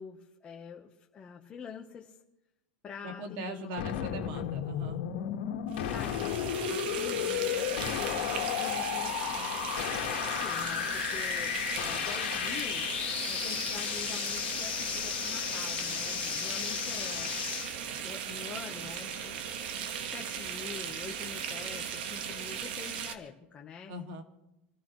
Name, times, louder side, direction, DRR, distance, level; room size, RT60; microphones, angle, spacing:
voice 1, 0.0-2.2 2.8-3.7 5.7-6.4 6.7-9.4 10.0-12.9 13.3-17.3 17.9-19.4 20.0-23.9, left 7 dB, 20° left, 0 dB, 1.3 m, -45 dB
voice 2, 3.0-5.1 23.9-24.2, equal, 50° right, 4 dB, 2.5 m, -40 dB
sound 1, 3.8-17.7, left 11 dB, 80° left, 2.0 m, -33 dB
sound 2, 5.7-23.1, right 8 dB, 70° right, 1.6 m, -38 dB
28.5 x 14.5 x 3.3 m, 0.92 s
supercardioid pair, 150°, 5 cm